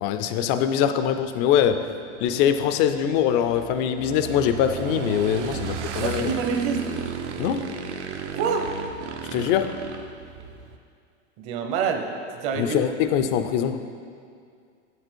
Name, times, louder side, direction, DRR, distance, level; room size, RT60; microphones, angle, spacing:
voice 1, 0.0-1.9 2.2-6.3 7.4-7.7 9.2-9.8 12.5-13.8, left 9 dB, 30° left, 9 dB, 0.4 m, -23 dB
Motorcycle / Engine, 1.1-10.7, right 6 dB, 75° right, 0.8 m, -35 dB
voice 2, 6.0-6.9 8.3-8.7 9.3-9.5 11.4-12.8, right 6 dB, 40° right, 5 dB, 0.8 m, -27 dB
7.4 x 6.8 x 4.4 m, 2.3 s
hypercardioid pair, 130°, 35 cm